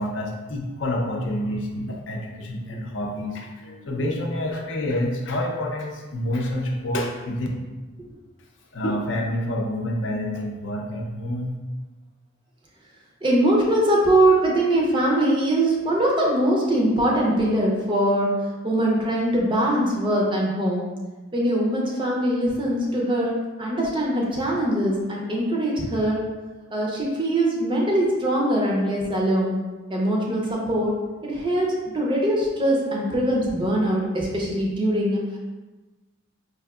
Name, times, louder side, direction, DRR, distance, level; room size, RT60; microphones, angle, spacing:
voice 1, 0.0-7.5 8.7-11.5, left 1 dB, 60° left, 0 dB, 0.5 m, -28 dB
voice 2, 13.2-18.3 18.6-20.9 21.3-26.2 26.7-29.6 29.9-30.9 31.2-35.2, right 1 dB, 25° right, -2 dB, 0.5 m, -22 dB
4.7 x 2.6 x 2.3 m, 1.2 s
head